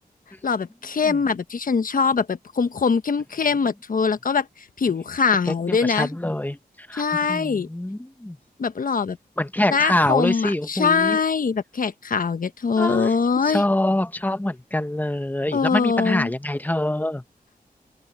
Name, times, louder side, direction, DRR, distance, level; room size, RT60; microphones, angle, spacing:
voice 1, 0.4-4.5 4.8-6.1 6.9-7.7 8.6-9.2 9.7-13.6 15.5-16.3, left 5 dB, 65° left, 1.2 m, -22 dB
voice 2, 5.5-7.0 7.3-8.4 9.4-11.2 12.8-13.2 13.4-17.2, left 1 dB, 10° left, 1.2 m, -25 dB
open air
cardioid pair, 70°, 16 cm